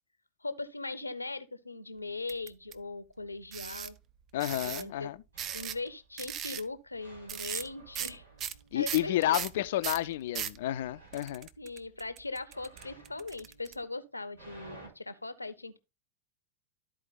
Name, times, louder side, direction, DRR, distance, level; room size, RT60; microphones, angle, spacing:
voice 1, 0.4-4.0 4.6-5.1 5.5-8.2 8.7-9.4 11.6-15.8, left 3 dB, 80° left, 0.9 m, -40 dB
sound 1, 2.3-2.7 3.5-3.9 4.4-4.8 5.4-5.9 6.2-6.6 7.3-7.7 7.9-8.1 8.4-10.6 11.1-13.7, right 9 dB, 30° right, 0.7 m, -38 dB
voice 2, 4.3-5.2 8.7-11.5, left 14 dB, 55° left, 0.6 m, -30 dB
sound 2, 5.3-6.0 7.0-10.3 10.7-11.4 12.5-14.9, right 2 dB, 75° right, 3.7 m, -54 dB
12.5 x 4.7 x 4.0 m
figure-of-eight pair, 90°, 0 cm